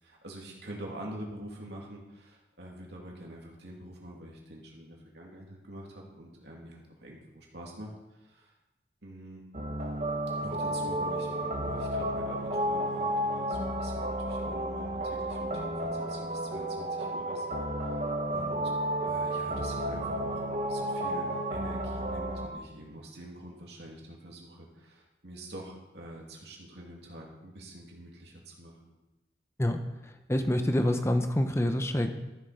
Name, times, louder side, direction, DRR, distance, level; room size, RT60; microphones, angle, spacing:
voice 1, 0.0-8.5 9.0-9.4 10.4-18.7 19.0-28.9, right 1 dB, 70° right, -2 dB, 2.7 m, -46 dB
sound 1, 9.5-22.5, right 1 dB, 40° right, 1.2 m, -32 dB
voice 2, 30.3-32.1, left 1 dB, 15° left, 7 dB, 0.8 m, -26 dB
14.0 x 7.4 x 5.1 m, 1.0 s
head